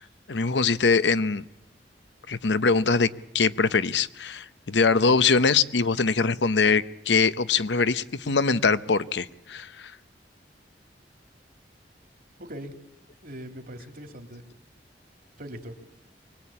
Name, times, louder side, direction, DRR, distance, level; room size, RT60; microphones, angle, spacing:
voice 1, 0.3-1.4 2.3-3.1 3.3-9.9, left 4 dB, 85° left, 14 dB, 0.9 m, -23 dB
voice 2, 12.4-12.7 13.2-14.4 15.4-15.7, equal, 55° right, 5 dB, 2.9 m, -40 dB
24.0 x 20.5 x 8.6 m, 0.91 s
head